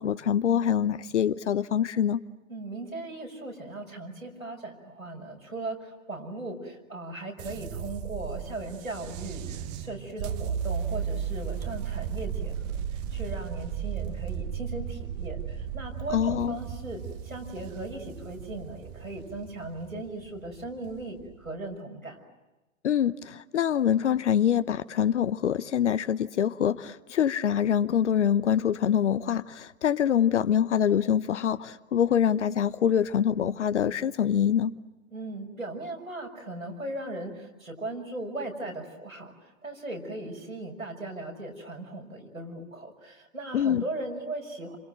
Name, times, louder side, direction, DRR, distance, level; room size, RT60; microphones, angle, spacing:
voice 1, 0.0-2.2 16.1-16.6 22.8-34.7 43.5-43.8, left 9 dB, 60° left, 1.0 m, -25 dB
voice 2, 2.5-12.6 12.9-22.2 35.1-44.8, right 2 dB, 90° right, 6.5 m, -38 dB
sound 1, 7.4-21.6, right 8 dB, 30° right, 1.0 m, -35 dB
29.0 x 26.5 x 7.8 m
figure-of-eight pair, 105°, 40 cm